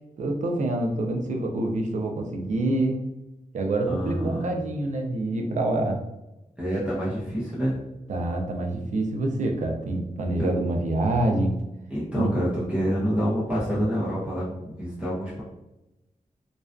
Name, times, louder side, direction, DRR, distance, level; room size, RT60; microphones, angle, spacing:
voice 1, 0.2-3.0 3.5-6.0 8.1-11.6 12.1-12.3, right 2 dB, 60° right, 2 dB, 0.4 m, -26 dB
voice 2, 3.9-4.5 6.6-7.8 10.4-10.5 11.9-14.4 14.8-15.4, equal, 10° right, -8 dB, 0.5 m, -27 dB
2.4 x 2.2 x 2.3 m, 0.96 s
wide cardioid pair, 170°, 14 cm